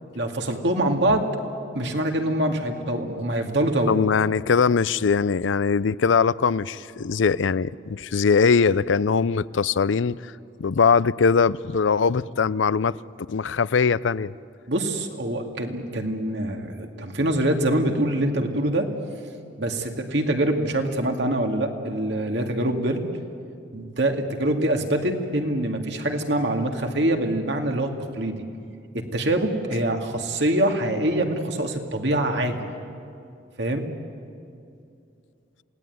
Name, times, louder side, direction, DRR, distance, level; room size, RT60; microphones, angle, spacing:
voice 1, 0.1-1.3 1.7-3.9 14.7-18.9 19.6-23.0 23.7-28.4 28.9-32.6 33.6-33.9, right 1 dB, 65° right, 2.3 m, -24 dB
voice 2, 3.9-10.3 10.6-13.0 13.3-14.3, left 5 dB, 85° left, 0.5 m, -21 dB
27.5 x 18.0 x 9.3 m
head